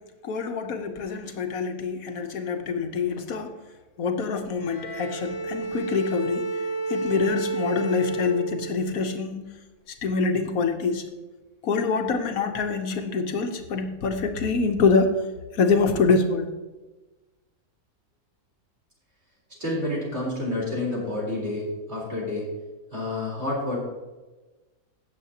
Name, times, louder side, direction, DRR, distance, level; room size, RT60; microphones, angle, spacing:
voice 1, 0.2-3.6 4.0-6.6 6.9-9.5 10.0-11.1 11.6-15.3 15.5-16.5, left 4 dB, 75° left, 6 dB, 1.3 m, -25 dB
Bowed string instrument, 4.6-9.0, right 3 dB, 40° left, 1.7 m, -31 dB
voice 2, 19.6-22.5 22.9-23.8, left 2 dB, 45° right, -4 dB, 4.1 m, -29 dB
16.5 x 7.2 x 2.8 m, 1.2 s
omnidirectional pair, 1.5 m